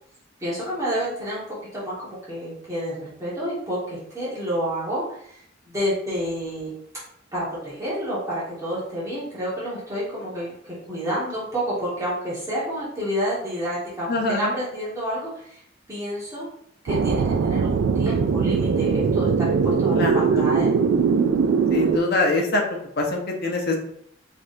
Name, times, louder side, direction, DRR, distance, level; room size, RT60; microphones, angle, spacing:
voice 1, 0.4-5.4 5.7-6.7 7.3-15.6 15.9-16.5 16.8-20.7, equal, 15° right, -9 dB, 1.6 m, -29 dB
voice 2, 14.1-14.5 20.0-20.5 21.7-22.6 23.0-23.8, left 2 dB, 55° left, 1 dB, 0.9 m, -24 dB
sound 1, 16.9-22.0, right 5 dB, 75° right, 0.3 m, -21 dB
4.8 x 3.5 x 2.6 m, 0.69 s
head